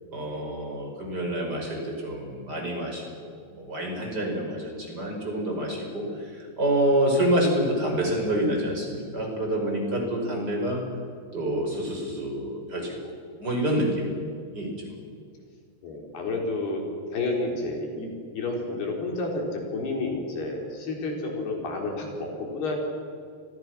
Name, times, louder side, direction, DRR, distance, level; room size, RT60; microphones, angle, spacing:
voice 1, 0.1-10.8 11.3-13.1 13.4-14.1 14.5-14.7, right 1 dB, 25° right, 1 dB, 5.9 m, -27 dB
voice 2, 15.8-16.8 17.1-22.8, left 2 dB, 75° left, 1 dB, 6.0 m, -30 dB
30.0 x 23.0 x 6.2 m, 2.3 s
omnidirectional pair, 4.6 m